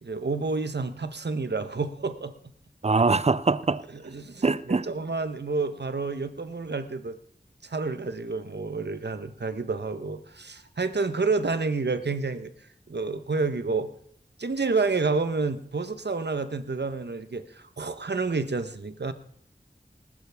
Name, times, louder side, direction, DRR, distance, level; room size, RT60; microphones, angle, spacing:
voice 1, 0.0-2.3 3.9-7.2 7.6-13.9 14.4-19.1, right 4 dB, 85° right, 0.9 m, -29 dB
voice 2, 2.8-3.8 4.4-4.8, right 4 dB, 40° right, 0.5 m, -22 dB
19.5 x 12.0 x 3.5 m
wide cardioid pair, 50°, 17 cm